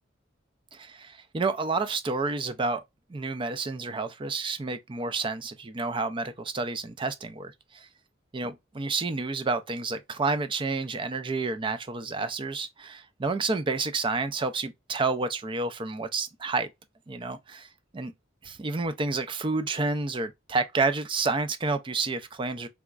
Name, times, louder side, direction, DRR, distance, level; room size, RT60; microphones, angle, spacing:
voice 1, 0.7-2.8 3.1-7.9 8.3-16.7 17.1-18.1 18.4-22.7, right 3 dB, 25° right, 0.4 m, -30 dB
3.4 x 3.0 x 2.3 m
head